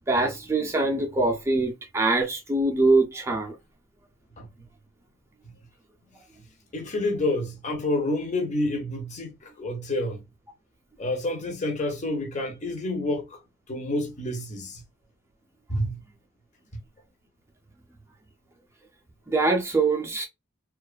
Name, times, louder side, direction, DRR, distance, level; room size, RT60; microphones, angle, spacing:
voice 1, 0.1-3.5 19.3-20.3, right 2 dB, 10° right, 0.3 m, -23 dB
voice 2, 6.7-10.2 11.0-13.3 13.7-14.8 15.7-16.0, left 1 dB, 35° left, 0.6 m, -28 dB
2.5 x 2.2 x 2.3 m
head